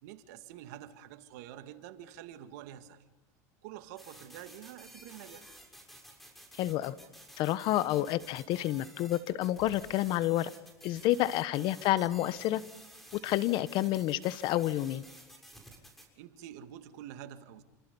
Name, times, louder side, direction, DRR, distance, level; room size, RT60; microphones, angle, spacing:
voice 1, 0.0-3.0 3.6-5.5 11.2-11.4 16.2-17.6, right 11 dB, 70° right, 2.2 m, -47 dB
sound 1, 4.0-16.1, right 1 dB, ahead, 6.9 m, -53 dB
voice 2, 6.6-6.9 7.4-10.5 10.8-12.6 13.2-15.0, left 14 dB, 55° left, 1.1 m, -29 dB
29.0 x 26.5 x 5.5 m
supercardioid pair, 105°, 9 cm